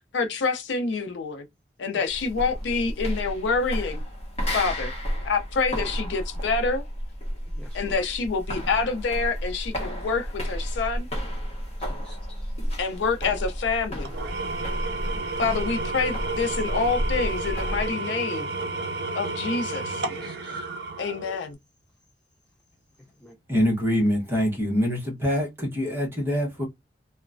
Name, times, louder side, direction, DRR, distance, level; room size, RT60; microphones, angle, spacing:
voice 1, 0.1-1.5 1.8-4.0 4.5-4.9 5.2-6.8 7.7-11.1 12.8-14.1 15.4-18.5 19.1-20.0 21.0-21.6, left 4 dB, 75° left, 0.4 m, -27 dB
sound 1, 2.1-17.9, equal, 35° left, 0.8 m, -32 dB
voice 2, 7.6-8.0 11.8-12.5 14.9-15.2 20.1-20.7 23.2-23.3, left 1 dB, 5° left, 0.4 m, -49 dB
Engine / Tools, 14.0-21.5, right 3 dB, 60° right, 0.5 m, -31 dB
voice 3, 23.5-26.7, equal, 10° right, 0.9 m, -24 dB
3.0 x 2.1 x 2.5 m
head